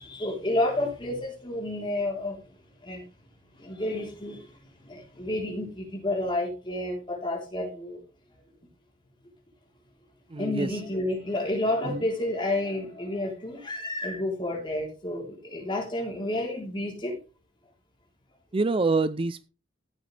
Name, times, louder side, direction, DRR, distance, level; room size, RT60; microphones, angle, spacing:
voice 1, 0.0-2.4 2.8-3.0 3.6-4.4 4.9-8.0 10.4-17.2, left 1 dB, 25° left, 0 dB, 3.6 m, -30 dB
voice 2, 10.3-10.8 11.8-12.0 18.5-19.4, right 3 dB, 25° right, 14 dB, 0.4 m, -26 dB
13.5 x 9.0 x 3.3 m, 0.34 s
head